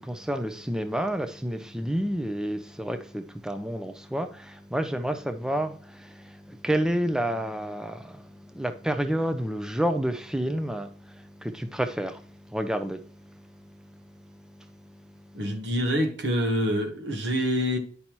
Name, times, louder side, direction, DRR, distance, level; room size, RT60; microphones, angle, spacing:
voice 1, 0.0-15.0 15.3-15.4, right 1 dB, 5° right, 0.4 m, -30 dB
voice 2, 15.3-17.8, equal, 85° right, 1.2 m, -26 dB
9.9 x 5.4 x 3.0 m
head